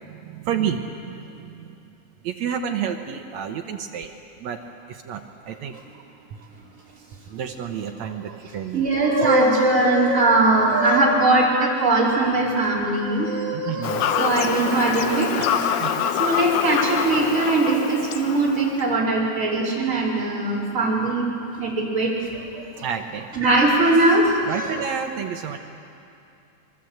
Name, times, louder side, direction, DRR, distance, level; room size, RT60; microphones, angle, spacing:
voice 1, 0.4-0.8 1.1-1.2 2.2-4.1 4.4-4.6 5.1-5.2 5.5-5.8 7.3-8.8 13.7-14.1 15.4-15.5 15.8-16.0 22.5-23.3 24.5-25.6, right 8 dB, 75° right, 5 dB, 1.7 m, -29 dB
voice 2, 8.7-15.3 16.2-21.3 21.6-22.1 23.3-24.8, right 2 dB, 20° right, -5 dB, 4.9 m, -20 dB
Fowl / Bird vocalization bird call bird song, 13.8-18.8, left 8 dB, 85° left, 2.9 m, -25 dB
25.5 x 22.0 x 7.9 m, 2.6 s
omnidirectional pair, 4.4 m